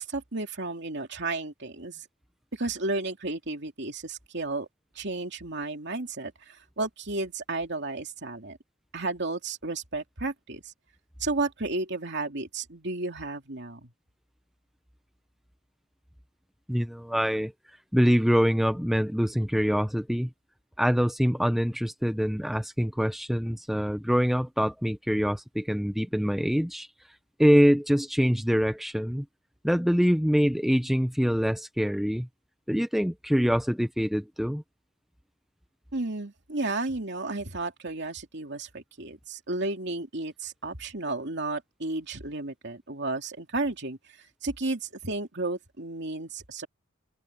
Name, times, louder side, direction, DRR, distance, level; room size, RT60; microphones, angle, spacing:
voice 1, 0.0-2.1 2.5-4.7 4.9-8.6 8.9-10.7 11.2-13.9 35.9-46.7, right 2 dB, 55° right, 2.8 m, -33 dB
voice 2, 16.7-17.5 17.9-20.3 20.8-26.9 27.4-29.3 29.6-32.3 32.7-34.6, equal, ahead, 0.8 m, -24 dB
open air
head